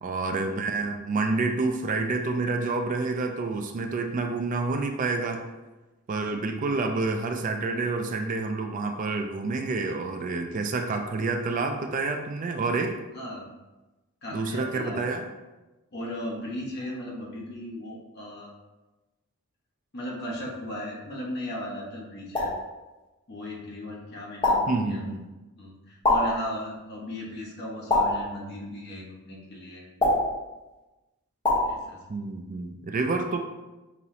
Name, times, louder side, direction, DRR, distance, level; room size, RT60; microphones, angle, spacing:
voice 1, 0.0-5.4 6.1-12.9 14.3-15.3 24.7-25.3 32.1-33.4, right 3 dB, 35° right, 4 dB, 0.3 m, -28 dB
voice 2, 13.1-13.5 14.2-15.0 15.9-18.5 19.9-22.5 23.3-25.0 25.6-29.9 31.6-32.0, equal, 50° left, -4 dB, 1.0 m, -36 dB
sound 1, 22.3-22.7 24.4-24.8 26.0-26.4 27.9-28.3 30.0-30.4 31.4-31.7, left 2 dB, 20° left, 1.1 m, -23 dB
5.4 x 3.0 x 2.7 m, 1.1 s
head